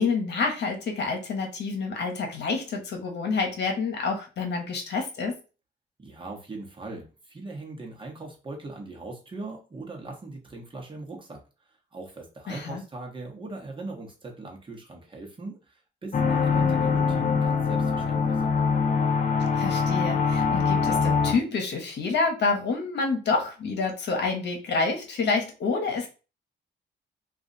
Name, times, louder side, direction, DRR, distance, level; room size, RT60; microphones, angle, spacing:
voice 1, 0.0-5.3 12.5-12.8 19.5-26.1, left 4 dB, 60° left, 2 dB, 1.0 m, -28 dB
voice 2, 6.0-11.4 11.9-18.5, right 3 dB, 25° right, 0 dB, 1.1 m, -40 dB
sound 1, 16.1-21.3, left 5 dB, 40° left, 0.6 m, -23 dB
2.5 x 2.3 x 3.9 m, 0.33 s
cardioid pair, 90°, 20 cm